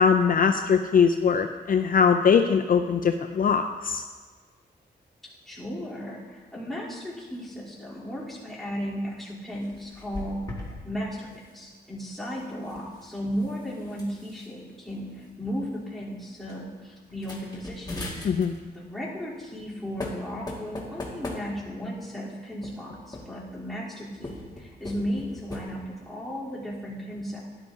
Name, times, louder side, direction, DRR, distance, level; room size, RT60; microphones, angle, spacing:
voice 1, 0.0-4.0 18.2-18.5, left 6 dB, 50° left, 6 dB, 0.5 m, -21 dB
voice 2, 5.5-10.4 10.8-18.0 18.7-27.4, equal, ahead, -9 dB, 3.5 m, -35 dB
sound 1, 9.5-10.8 11.1-11.4 12.5-14.5 15.2-15.3 15.6-15.9 16.4-16.6 17.1-18.7 19.6-19.7 20.0-21.9 22.6-23.5 24.1-25.6, left 2 dB, 20° left, 2.0 m, -40 dB
12.5 x 11.0 x 2.8 m, 1.4 s
cardioid pair, 85°, 18 cm